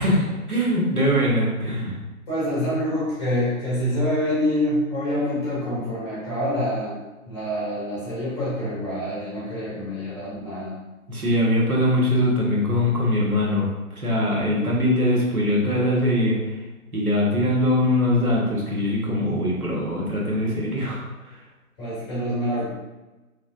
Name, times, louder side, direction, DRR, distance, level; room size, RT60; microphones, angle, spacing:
voice 1, 0.0-2.0 11.1-13.7 14.0-16.6 16.9-21.4, left 1 dB, 85° right, -4 dB, 1.3 m, -22 dB
voice 2, 2.3-6.9 7.3-10.8 19.2-19.4 21.8-22.7, equal, 20° left, -8 dB, 1.1 m, -26 dB
3.5 x 3.2 x 2.5 m, 1.1 s
figure-of-eight pair, 140°, 43 cm